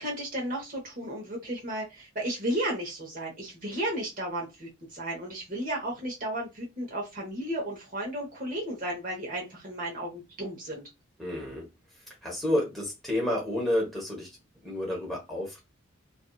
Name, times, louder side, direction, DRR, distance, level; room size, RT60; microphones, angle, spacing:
voice 1, 0.0-10.8, right 1 dB, 45° right, 1.0 m, -34 dB
voice 2, 11.2-11.7 12.2-14.4 14.6-15.6, left 1 dB, ahead, 0.9 m, -30 dB
2.6 x 2.5 x 2.2 m
head